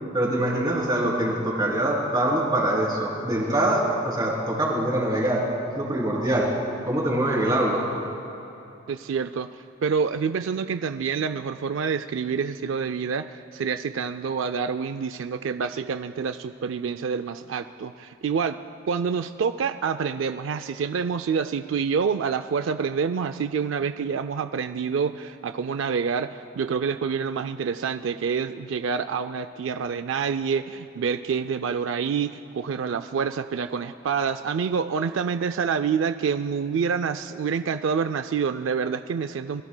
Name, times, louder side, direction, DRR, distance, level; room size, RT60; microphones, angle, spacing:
voice 1, 0.1-5.4 5.7-6.5 6.8-7.8, right 1 dB, 20° right, -3 dB, 3.1 m, -24 dB
voice 2, 8.9-18.6 18.9-39.6, right 6 dB, 80° right, 10 dB, 0.4 m, -27 dB
27.5 x 22.0 x 2.2 m, 3.0 s
head